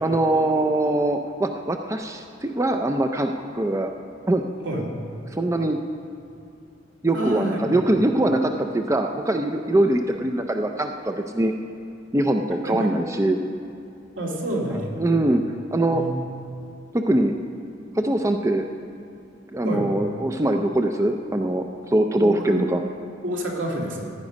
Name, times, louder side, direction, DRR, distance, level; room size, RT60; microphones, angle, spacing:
voice 1, 0.0-3.9 4.3-4.4 5.4-5.8 7.0-11.5 12.1-13.4 14.7-15.4 15.7-16.0 16.9-17.3 17.9-18.6 19.5-22.8, right 1 dB, 15° right, 5 dB, 0.5 m, -22 dB
voice 2, 7.1-7.8 12.7-12.8 14.2-15.0 15.9-16.2 19.6-19.9 22.2-22.6 23.2-24.0, right 1 dB, 75° right, -2 dB, 2.6 m, -28 dB
16.0 x 9.7 x 5.2 m, 2.7 s
head